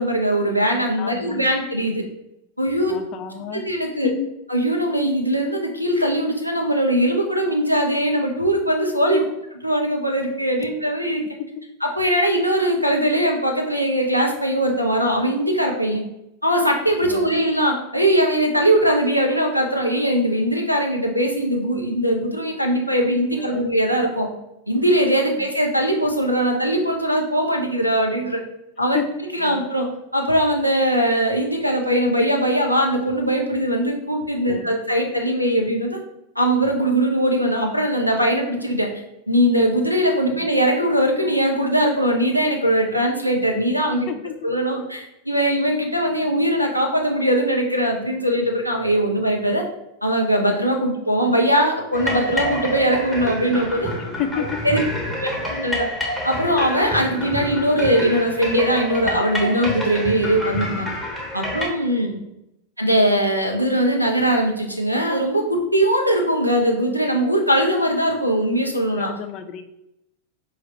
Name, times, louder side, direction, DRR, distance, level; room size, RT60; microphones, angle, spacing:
voice 1, 0.0-2.0 2.6-2.9 3.5-4.1 4.5-9.2 9.6-11.2 11.8-16.0 16.4-24.3 24.7-28.4 28.8-29.0 29.3-36.0 36.4-38.9 39.3-44.1 44.4-49.6 50.0-53.9 54.6-54.8 55.2-55.9 56.2-60.9 61.3-62.1 62.8-69.1, equal, 90° right, 2 dB, 0.7 m, -20 dB
voice 2, 1.0-1.5 2.9-3.7 4.0-4.3 9.1-9.2 11.4-11.5 17.0-17.4 23.4-23.7 25.4-25.5 28.9-29.1 29.4-29.6 34.5-34.8 40.3-40.5 44.1-44.3 54.2-55.1 62.0-62.3 69.0-69.6, left 8 dB, 35° left, 7 dB, 0.5 m, -31 dB
Traditional xylophone in the Kampala museum Uganda, 51.9-61.7, equal, 5° right, 1.1 m, -28 dB
4.7 x 2.4 x 4.1 m, 0.86 s
figure-of-eight pair, 90°, 0 cm